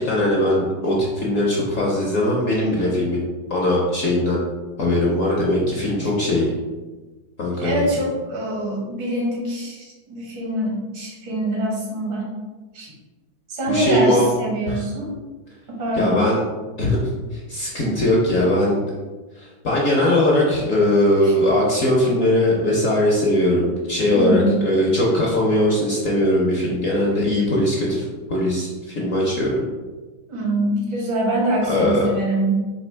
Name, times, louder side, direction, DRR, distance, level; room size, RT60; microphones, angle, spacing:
voice 1, 0.0-4.4 4.8-6.5 7.4-7.9 13.7-14.2 14.7-14.8 16.0-16.4 16.8-18.8 19.4-29.6 31.7-32.1, left 1 dB, 60° left, -4 dB, 0.9 m, -20 dB
voice 2, 7.6-12.3 12.7-12.9 13.5-15.1 15.7-16.3 24.1-24.6 30.3-32.5, right 1 dB, 80° right, -4 dB, 2.2 m, -24 dB
4.2 x 2.8 x 4.4 m, 1.3 s
omnidirectional pair, 2.1 m